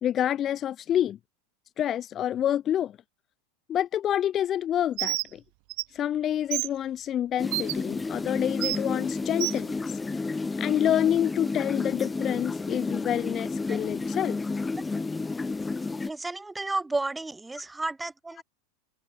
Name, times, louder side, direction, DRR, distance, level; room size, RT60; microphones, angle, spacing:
voice 1, 0.0-1.2 1.8-3.0 3.7-5.4 5.9-10.3 10.6-14.4, left 10 dB, 35° left, 2.3 m, -28 dB
Bird, 5.0-5.3 5.7-5.8 6.5-6.7 7.5-7.7 8.6-8.8 9.4-9.6, right 40 dB or more, 60° right, 4.4 m, -28 dB
sound 1, 7.4-16.1, left 3 dB, 10° left, 6.8 m, -31 dB
voice 2, 16.1-18.4, right 2 dB, 10° right, 4.9 m, -32 dB
supercardioid pair, 115°, 0 cm